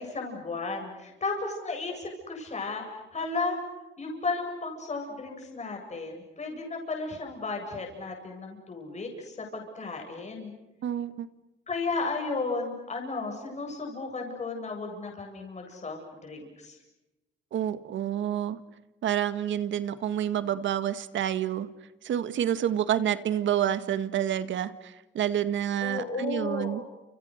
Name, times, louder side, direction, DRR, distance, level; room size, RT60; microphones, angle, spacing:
voice 1, 0.0-3.6 4.0-10.5 11.7-16.8 25.8-26.8, left 3 dB, 35° left, 2 dB, 8.0 m, -34 dB
voice 2, 10.8-11.3 17.5-18.6 19.0-21.7 22.0-26.8, right 10 dB, 70° right, 12 dB, 1.8 m, -28 dB
30.0 x 29.0 x 6.6 m, 1.0 s
cardioid pair, 90°, 20 cm